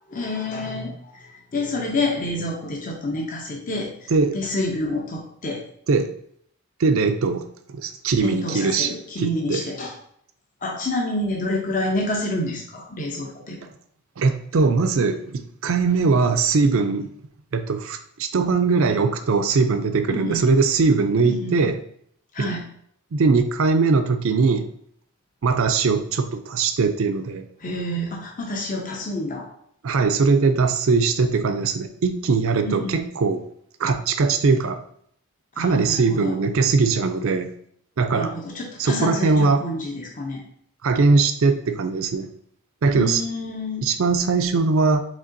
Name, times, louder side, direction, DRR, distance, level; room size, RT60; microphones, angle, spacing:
voice 1, 0.1-5.6 8.2-9.9 10.6-13.6 20.1-20.4 21.2-21.6 22.3-22.6 27.6-29.5 32.6-33.0 35.6-36.4 38.1-40.4 42.9-43.8, left 1 dB, 35° left, 0 dB, 0.6 m, -28 dB
voice 2, 6.8-9.6 14.2-17.1 17.5-21.8 22.4-22.5 23.1-24.7 25.4-27.4 29.8-33.4 33.8-34.8 35.6-37.6 38.0-38.4 38.8-39.6 40.8-42.3 42.8-43.2 43.8-45.0, right 4 dB, 65° right, 9 dB, 0.4 m, -21 dB
5.1 x 3.7 x 2.6 m, 0.66 s
head